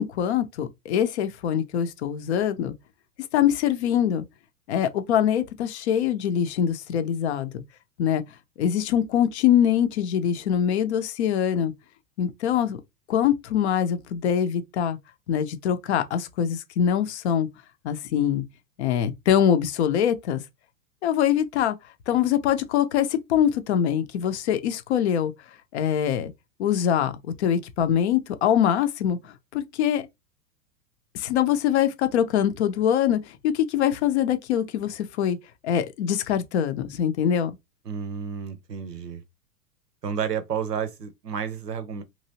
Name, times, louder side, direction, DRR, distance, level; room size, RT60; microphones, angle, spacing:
voice 1, 0.0-2.7 3.3-4.2 4.7-7.5 8.0-8.2 8.6-11.7 12.2-12.8 13.1-15.0 15.3-17.5 17.8-18.4 18.8-20.4 21.0-21.8 22.1-25.3 25.7-26.3 26.6-27.1 27.4-30.1 31.1-35.4 35.6-37.6, left 9 dB, 45° left, 0.5 m, -23 dB
voice 2, 37.9-39.2 40.0-42.0, right 7 dB, 85° right, 0.7 m, -31 dB
2.8 x 2.6 x 2.7 m
figure-of-eight pair, 100°, 47 cm